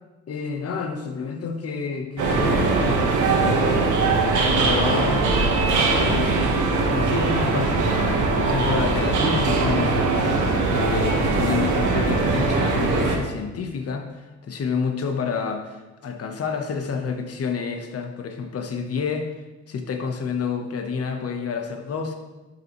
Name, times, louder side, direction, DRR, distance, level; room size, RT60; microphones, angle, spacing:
voice 1, 0.3-5.2 5.9-6.4 6.9-8.0 8.3-19.3 19.7-22.1, left 5 dB, 50° left, 4 dB, 1.1 m, -29 dB
sound 1, 2.2-13.2, right 3 dB, 80° right, 1.5 m, -21 dB
12.0 x 5.8 x 3.1 m, 1.2 s
cardioid pair, 90°, 30 cm